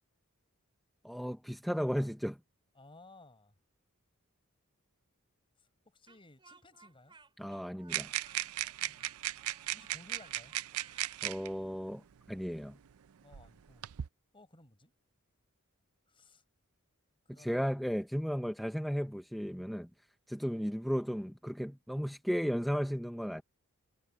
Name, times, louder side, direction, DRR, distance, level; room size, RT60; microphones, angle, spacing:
voice 1, 1.0-2.4 7.4-8.1 11.2-12.0 12.3-12.8 17.3-19.9 20.3-23.4, equal, ahead, 0.6 m, -34 dB
voice 2, 2.7-3.5 5.6-7.2 8.8-9.0 9.7-10.5 13.2-13.8 14.3-14.9 16.1-16.4 17.3-17.8 20.5-20.7, left 2 dB, 25° left, 4.7 m, -58 dB
Speech, 6.1-11.2, right 4 dB, 25° right, 3.7 m, -60 dB
sound 1, 7.9-11.5 12.5-12.6 13.3-14.1, right 13 dB, 75° right, 0.4 m, -37 dB
head